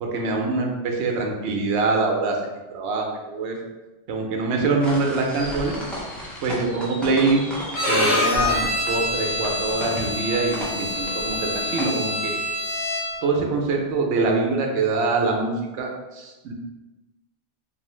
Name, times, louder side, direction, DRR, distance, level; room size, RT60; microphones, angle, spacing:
voice 1, 0.0-3.6 4.1-5.8 6.4-7.5 7.9-12.3 13.2-16.5, right 3 dB, 70° right, 1 dB, 0.8 m, -24 dB
sound 1, 4.8-11.8, equal, ahead, 0.3 m, -35 dB
Bowed string instrument, 7.7-13.3, left 1 dB, 45° left, 1.2 m, -25 dB
2.6 x 2.4 x 3.0 m, 1.1 s
omnidirectional pair, 1.2 m